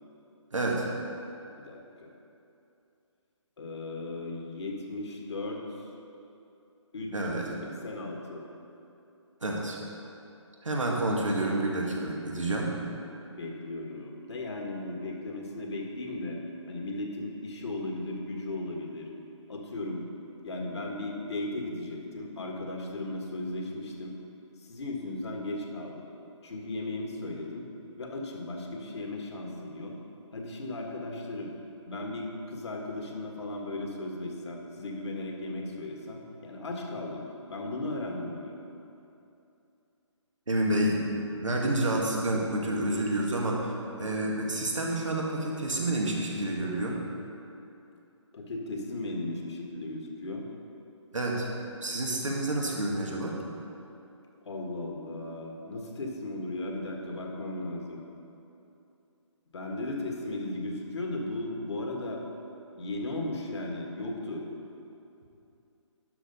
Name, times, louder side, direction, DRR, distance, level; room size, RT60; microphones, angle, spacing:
voice 1, 0.5-0.9 7.1-7.5 9.4-9.8 10.6-12.7 40.5-41.1 41.4-47.0 51.1-51.5 51.8-53.4, right 1 dB, 85° right, -2 dB, 1.9 m, -29 dB
voice 2, 1.6-2.1 3.6-5.9 6.9-8.4 13.4-16.4 16.7-19.1 19.5-20.0 20.4-24.1 24.6-26.1 26.4-27.6 28.0-30.0 30.3-31.5 31.9-37.2 37.5-38.5 48.3-50.5 54.4-58.1 59.5-62.2 62.7-64.5, left 2 dB, 65° left, 0 dB, 1.7 m, -36 dB
11.5 x 5.0 x 5.4 m, 2.7 s
figure-of-eight pair, 150°, 16 cm